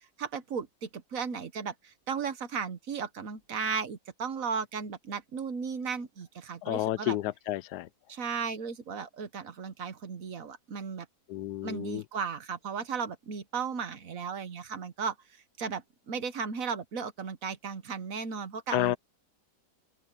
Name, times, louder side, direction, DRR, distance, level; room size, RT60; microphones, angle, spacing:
voice 1, 0.2-7.2 8.1-11.1 11.6-15.1 15.6-19.0, right 6 dB, 55° right, 1.4 m, -35 dB
voice 2, 6.6-7.9 11.3-12.0 18.7-19.0, left 15 dB, 75° left, 1.1 m, -30 dB
open air
omnidirectional pair, 1.8 m